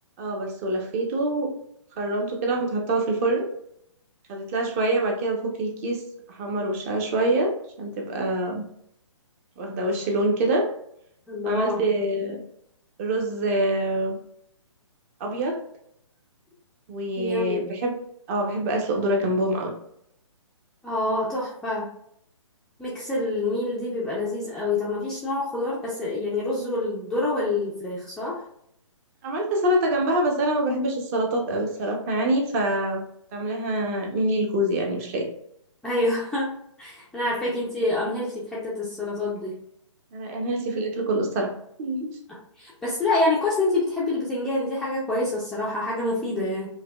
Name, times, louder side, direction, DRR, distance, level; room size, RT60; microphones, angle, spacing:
voice 1, 0.2-1.5 2.0-3.5 4.3-6.0 6.3-8.6 9.6-10.7 11.4-12.4 13.0-14.2 15.2-15.6 16.9-17.9 18.3-19.7 29.2-33.0 33.3-35.3 40.1-41.5 41.8-42.2, right 1 dB, 25° right, 2 dB, 0.7 m, -25 dB
voice 2, 11.3-11.8 17.2-17.6 20.8-21.9 22.8-28.4 35.8-36.5 36.8-39.5 42.3-46.7, left 2 dB, 5° left, -8 dB, 0.5 m, -27 dB
4.9 x 2.3 x 2.2 m, 0.71 s
hypercardioid pair, 150°, 17 cm